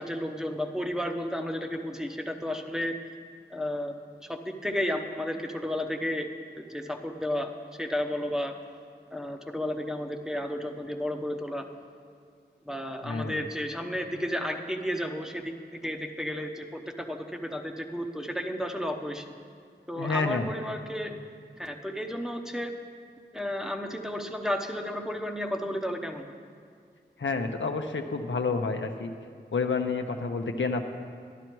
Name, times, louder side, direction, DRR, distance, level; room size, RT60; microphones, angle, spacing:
voice 1, 0.0-2.9 3.5-3.9 4.2-6.3 6.6-7.5 7.8-8.5 9.1-11.7 12.6-15.5 15.8-19.2 19.9-21.2 21.6-22.7 23.3-26.2, left 1 dB, 5° right, 2 dB, 0.9 m, -32 dB
voice 2, 13.0-13.4 20.0-20.5 27.2-29.1 29.5-30.9, left 4 dB, 85° left, 5 dB, 0.7 m, -29 dB
12.0 x 11.5 x 4.6 m, 2.1 s
wide cardioid pair, 50°, 19 cm